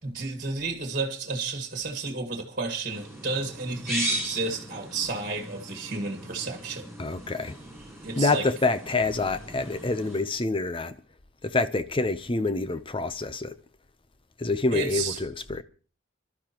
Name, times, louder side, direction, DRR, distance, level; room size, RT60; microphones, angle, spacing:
voice 1, 0.0-6.9 8.0-8.5 14.7-15.2, right 3 dB, 40° right, 1.8 m, -32 dB
sound 1, 2.9-10.2, right 1 dB, ahead, 7.6 m, -37 dB
voice 2, 7.0-7.6 8.2-11.0 11.4-13.6 14.4-15.6, left 3 dB, 25° left, 0.6 m, -27 dB
26.0 x 12.0 x 3.0 m
head